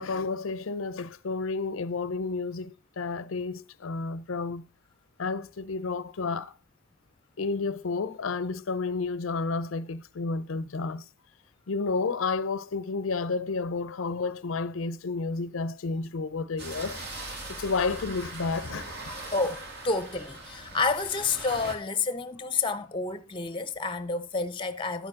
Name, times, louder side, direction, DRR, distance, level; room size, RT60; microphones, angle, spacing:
voice 1, 0.0-4.6 5.2-6.5 7.4-11.0 11.7-17.0 17.6-18.8, left 4 dB, 75° left, 0.6 m, -31 dB
sound 1, 16.6-21.7, right 2 dB, 55° right, 2.6 m, -40 dB
voice 2, 19.3-25.1, left 4 dB, 25° left, 0.8 m, -29 dB
11.5 x 8.9 x 3.7 m
head